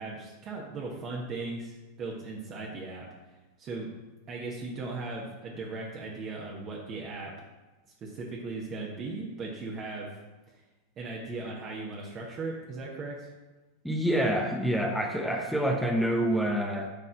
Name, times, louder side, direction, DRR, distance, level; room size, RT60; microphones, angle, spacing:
voice 1, 0.0-3.1 3.6-3.9 4.3-7.3 8.0-10.1 11.0-13.3, right 3 dB, 30° right, -3 dB, 1.5 m, -37 dB
voice 2, 13.8-16.9, equal, ahead, 1 dB, 1.0 m, -27 dB
9.9 x 4.2 x 6.4 m, 1.1 s
figure-of-eight pair, 90°, 0 cm